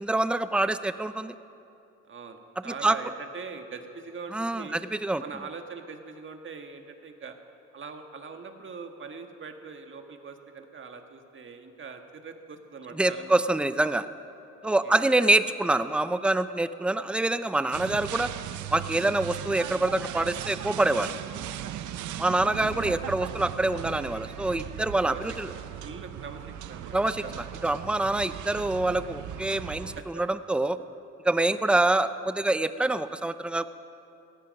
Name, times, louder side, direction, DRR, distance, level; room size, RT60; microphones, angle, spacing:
voice 1, 0.0-1.3 2.7-3.0 4.3-5.2 13.0-14.1 14.6-18.3 18.7-21.2 22.2-25.5 26.9-27.2 27.6-30.8 31.2-33.7, right 2 dB, 5° right, 12 dB, 0.5 m, -25 dB
voice 2, 2.1-4.8 5.2-7.3 7.7-13.4 14.6-15.0 21.9-22.3 25.0-27.4 30.0-30.1 31.5-31.8, right 5 dB, 40° right, 5 dB, 1.5 m, -42 dB
sound 1, 17.7-30.0, right 11 dB, 75° right, 0.7 m, -38 dB
17.0 x 15.5 x 5.3 m, 2.7 s
cardioid pair, 90°, 30 cm